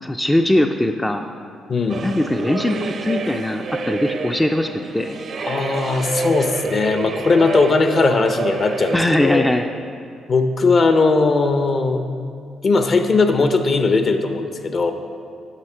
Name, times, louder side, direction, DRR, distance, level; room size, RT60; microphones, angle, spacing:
voice 1, 0.0-1.2 2.0-5.2 8.9-9.7, left 1 dB, 10° left, 5 dB, 0.4 m, -20 dB
voice 2, 1.7-2.1 5.4-9.4 10.3-12.0 12.6-14.9, left 3 dB, 45° left, 7 dB, 0.7 m, -18 dB
sound 1, 1.9-9.6, right 4 dB, 55° right, 0.6 m, -28 dB
9.8 x 6.0 x 4.5 m, 2.3 s
cardioid pair, 90°, 0 cm